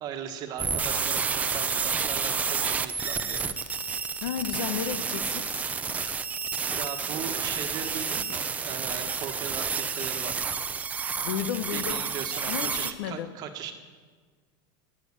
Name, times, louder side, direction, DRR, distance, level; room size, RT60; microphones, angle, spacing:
voice 1, 0.0-3.5 6.8-10.5 11.7-13.7, right 8 dB, 35° right, 6 dB, 1.3 m, -38 dB
sound 1, 0.6-12.9, right 5 dB, 10° right, 0.5 m, -30 dB
voice 2, 4.2-5.7 11.2-12.0 12.5-13.3, left 9 dB, 85° left, 13 dB, 1.0 m, -32 dB
18.0 x 7.8 x 8.7 m, 1.5 s
supercardioid pair, 170°, 12 cm